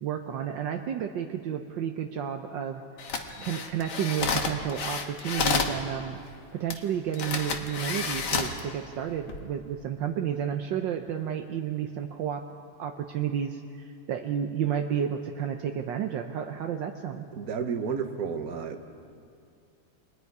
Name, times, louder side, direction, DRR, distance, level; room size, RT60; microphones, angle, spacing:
voice 1, 0.0-2.8 3.4-6.2 6.5-12.5 12.8-17.3, right 9 dB, 70° right, 5 dB, 1.5 m, -31 dB
sound 1, 3.0-5.8 6.7-6.8 7.1-8.6 9.1-9.4, left 5 dB, 60° left, 2.0 m, -30 dB
voice 2, 17.3-18.8, right 6 dB, 50° right, 6 dB, 1.6 m, -31 dB
29.5 x 22.5 x 4.8 m, 2.4 s
omnidirectional pair, 2.1 m